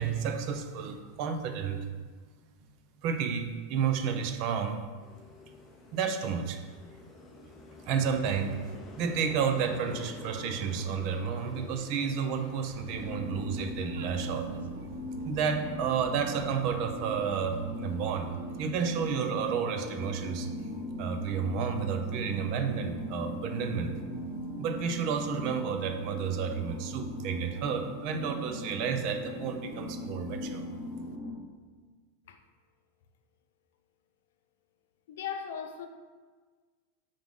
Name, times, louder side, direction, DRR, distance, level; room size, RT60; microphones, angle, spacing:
voice 1, 0.0-1.8 3.0-4.8 5.9-6.6 7.8-8.6 9.0-14.5 15.2-18.3 18.6-20.5 21.0-23.9 24.6-30.6, right 6 dB, 35° right, 0.6 m, -31 dB
sound 1, 5.0-13.2, left 3 dB, 15° left, 0.7 m, -47 dB
sound 2, 12.6-18.8, right 4 dB, 85° right, 0.6 m, -47 dB
sound 3, 12.9-31.3, equal, 15° right, 2.0 m, -39 dB
voice 2, 35.1-35.9, left 7 dB, 70° left, 0.7 m, -37 dB
7.6 x 4.9 x 3.7 m
supercardioid pair, 175°, 0 cm